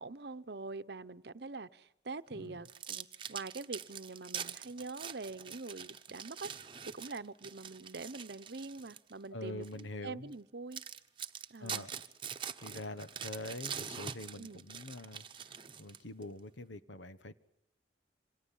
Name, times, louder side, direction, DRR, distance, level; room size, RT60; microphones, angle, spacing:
voice 1, 0.0-6.5 6.8-10.8 11.5-11.9 14.4-14.7, right 3 dB, 60° right, 0.9 m, -44 dB
voice 2, 2.3-2.7 9.3-10.3 11.6-11.9 12.6-17.4, left 2 dB, 90° left, 1.3 m, -45 dB
sound 1, 2.6-9.1 9.6-9.8 10.3-10.4 10.7-16.2, right 7 dB, 25° right, 1.0 m, -44 dB
28.0 x 26.0 x 5.6 m
head